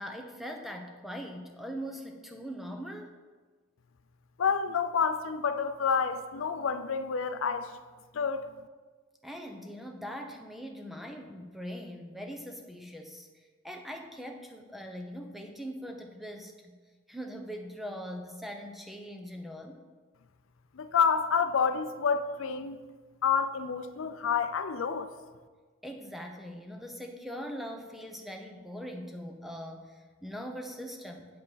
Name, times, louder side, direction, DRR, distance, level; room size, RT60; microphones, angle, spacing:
voice 1, 0.0-3.1 9.2-13.3 13.6-16.8 17.1-19.8 25.8-31.3, equal, ahead, 0.6 m, -41 dB
voice 2, 4.4-7.8 8.1-8.5 20.7-22.8 23.2-25.1, left 6 dB, 70° left, 0.5 m, -28 dB
8.2 x 7.7 x 4.0 m
head